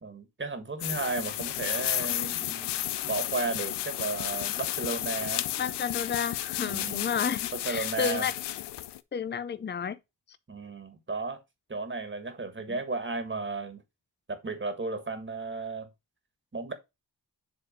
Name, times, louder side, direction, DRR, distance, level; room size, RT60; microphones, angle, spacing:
voice 1, 0.0-5.5 6.6-7.1 7.5-8.3 10.5-11.4 11.7-13.8 14.3-15.9 16.5-16.7, right 3 dB, 30° right, 1.6 m, -34 dB
sound 1, 0.8-9.0, left 14 dB, 90° left, 0.5 m, -32 dB
voice 2, 5.6-8.3 9.1-10.0 12.7-12.8, left 7 dB, 25° left, 0.6 m, -31 dB
7.3 x 3.4 x 5.0 m
cardioid pair, 60°, 41 cm